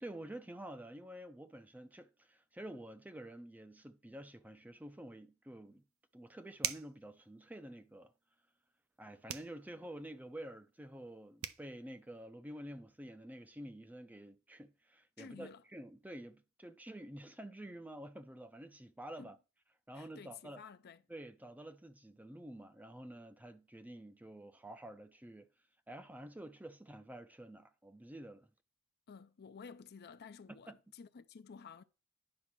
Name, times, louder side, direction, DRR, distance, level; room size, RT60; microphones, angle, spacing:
voice 1, 0.0-5.8 6.1-8.1 9.0-19.4 19.9-20.6 21.1-25.5 25.9-28.5 30.5-30.7, right 1 dB, 10° right, 0.5 m, -49 dB
sound 1, 6.6-7.0 9.3-9.6 11.1-11.2 11.4-11.6, right 10 dB, 70° right, 0.6 m, -39 dB
voice 2, 15.2-15.6 19.2-19.3 19.9-21.0 29.1-31.8, left 5 dB, 50° left, 0.5 m, -53 dB
9.6 x 3.2 x 6.0 m
head